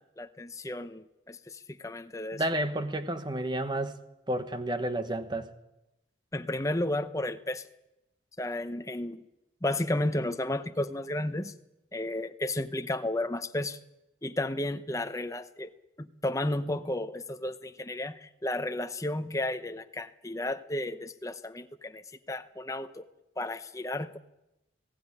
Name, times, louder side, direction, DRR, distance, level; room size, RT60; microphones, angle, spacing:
voice 1, 0.0-2.4 6.3-7.7 8.4-9.2 9.6-11.5 11.9-13.8 14.2-15.7 16.0-23.1 23.4-24.2, left 1 dB, 15° left, 0.8 m, -33 dB
voice 2, 2.3-4.0 4.3-5.5, right 1 dB, 25° right, 1.2 m, -31 dB
20.0 x 15.5 x 10.0 m
head